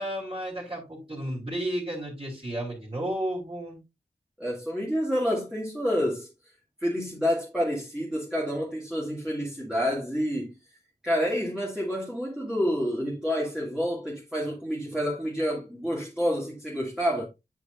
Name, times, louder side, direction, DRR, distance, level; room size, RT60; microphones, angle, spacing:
voice 1, 0.0-3.8, right 1 dB, 30° right, 3.4 m, -32 dB
voice 2, 4.4-6.3 6.8-10.6 11.0-17.3, equal, 5° right, 2.3 m, -28 dB
8.5 x 6.2 x 2.5 m
wide cardioid pair, 50°, 17 cm